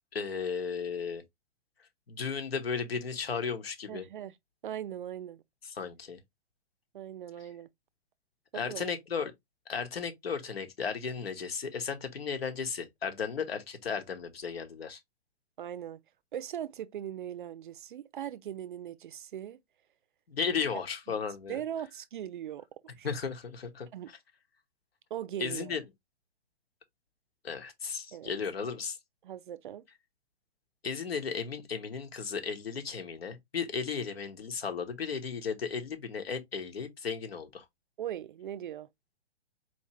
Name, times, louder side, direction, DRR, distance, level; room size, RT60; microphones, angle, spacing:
voice 1, 0.1-1.2 2.1-4.0 5.6-6.2 8.5-9.3 9.7-15.0 20.3-21.6 23.0-23.9 25.4-25.8 27.4-29.0 30.8-37.6, left 6 dB, 70° left, 1.3 m, -35 dB
voice 2, 3.9-4.3 4.6-5.4 6.9-7.7 8.5-8.8 15.6-16.0 16.3-19.6 21.1-21.2 21.5-22.7 23.0-23.1 23.9-24.1 25.1-25.7 28.1-28.3 29.2-29.9 38.0-38.9, right 10 dB, 50° right, 0.5 m, -39 dB
4.4 x 2.9 x 2.9 m
figure-of-eight pair, 120°, 32 cm